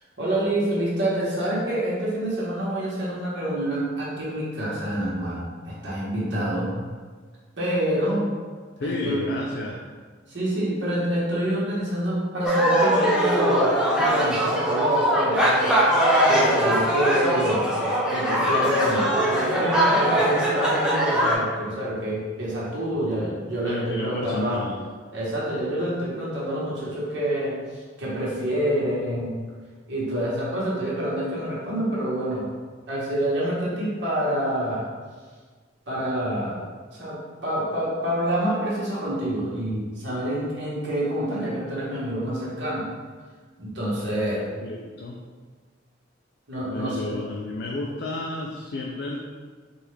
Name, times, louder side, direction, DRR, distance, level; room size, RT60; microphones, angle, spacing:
voice 1, 0.2-6.7 7.6-8.3 8.8-9.3 10.3-15.8 16.3-17.7 18.1-24.6 25.1-29.4 29.9-32.5 32.9-34.8 35.9-36.6 36.9-42.9 43.6-44.5 46.5-47.1, right 1 dB, 60° right, -8 dB, 1.3 m, -27 dB
voice 2, 8.8-9.9 23.6-24.8 44.1-45.2 46.6-49.2, left 2 dB, 55° left, -1 dB, 0.3 m, -32 dB
sound 1, 12.4-21.4, right 1 dB, 5° right, 0.5 m, -21 dB
4.5 x 2.4 x 3.3 m, 1.5 s
head